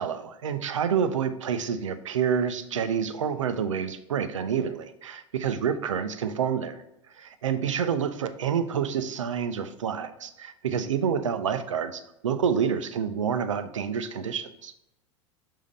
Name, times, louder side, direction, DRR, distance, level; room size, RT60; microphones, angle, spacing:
voice 1, 0.0-6.8 7.1-14.7, right 7 dB, 80° right, 11 dB, 0.5 m, -28 dB
7.1 x 2.8 x 5.3 m, 0.84 s
hypercardioid pair, 85°, 16 cm